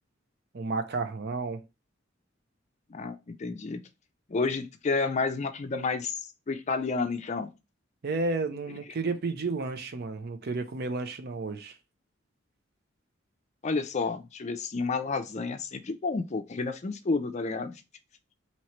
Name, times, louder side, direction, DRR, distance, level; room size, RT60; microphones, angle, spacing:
voice 1, 0.5-1.6 8.0-11.8, right 3 dB, 55° right, 0.6 m, -32 dB
voice 2, 2.9-3.8 4.3-6.2 6.5-7.5 13.6-17.7, left 4 dB, 35° left, 0.4 m, -30 dB
3.0 x 2.9 x 4.3 m
head